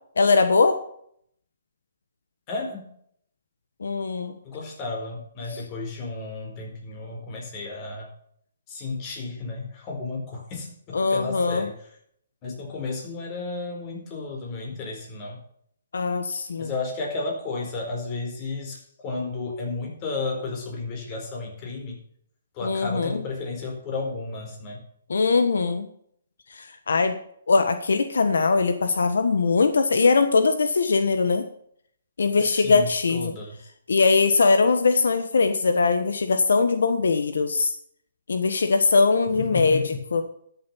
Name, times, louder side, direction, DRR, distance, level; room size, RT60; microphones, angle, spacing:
voice 1, 0.2-0.8 3.8-4.3 10.9-11.7 15.9-16.7 22.6-23.2 25.1-25.9 26.5-27.2 27.5-31.4 32.2-33.3 33.9-37.7 38.3-40.2, left 4 dB, 80° left, 8 dB, 1.3 m, -21 dB
voice 2, 2.5-2.9 4.4-8.1 8.7-11.7 12.4-15.4 16.6-22.0 22.5-24.8 32.4-33.6 39.3-40.0, left 3 dB, 25° left, 0 dB, 4.5 m, -33 dB
12.5 x 7.5 x 5.6 m, 0.66 s
hypercardioid pair, 155°, 0 cm